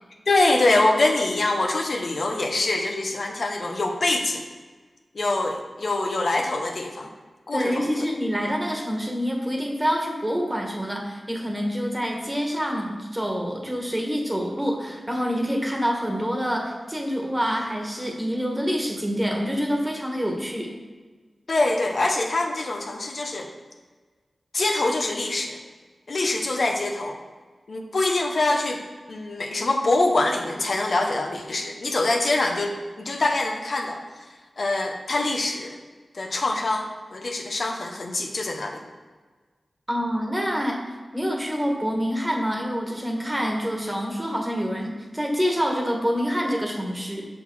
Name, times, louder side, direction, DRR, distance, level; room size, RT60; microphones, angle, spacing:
voice 1, 0.3-4.4 5.1-7.1 7.5-7.9 21.5-23.5 24.5-25.6 26.1-27.2 27.7-28.8 29.1-34.0 34.6-35.8 36.1-38.8, left 2 dB, 65° left, 2 dB, 0.8 m, -24 dB
voice 2, 7.5-20.7 39.9-40.8 41.1-47.2, equal, 15° right, 1 dB, 1.5 m, -26 dB
6.5 x 5.6 x 4.6 m, 1.4 s
wide cardioid pair, 65°, 0 cm